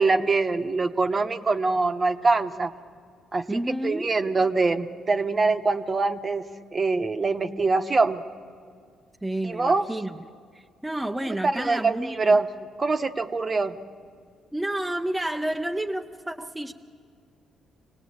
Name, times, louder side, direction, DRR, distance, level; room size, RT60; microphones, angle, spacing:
voice 1, 0.0-2.7 3.3-6.4 6.7-8.2 9.4-9.8 11.4-12.5 12.8-13.8, right 3 dB, 30° right, 8 dB, 1.1 m, -24 dB
voice 2, 3.5-4.1 9.2-10.2 10.5-12.4 14.5-16.7, right 1 dB, 5° right, 3 dB, 0.7 m, -30 dB
25.5 x 18.0 x 8.7 m, 2.3 s
cardioid pair, 90°, 0 cm